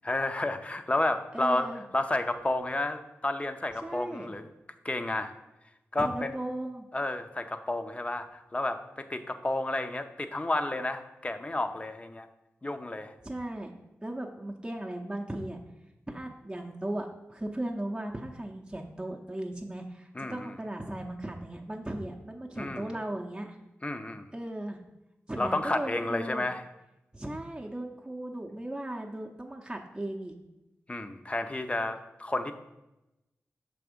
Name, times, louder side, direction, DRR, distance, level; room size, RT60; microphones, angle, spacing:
voice 1, 0.0-1.7 1.9-4.5 4.8-5.3 5.9-6.3 6.9-12.3 12.6-13.1 20.2-20.5 22.6-22.9 23.8-24.3 25.4-26.6 30.9-32.5, left 2 dB, 25° left, 8 dB, 0.6 m, -31 dB
voice 2, 1.3-1.8 3.8-4.3 6.0-6.8 13.2-15.6 16.1-23.6 24.3-24.8 25.3-26.5 27.1-30.3, right 1 dB, 15° right, 0 dB, 0.7 m, -37 dB
5.9 x 3.4 x 5.1 m, 0.96 s
cardioid pair, 45°, 5 cm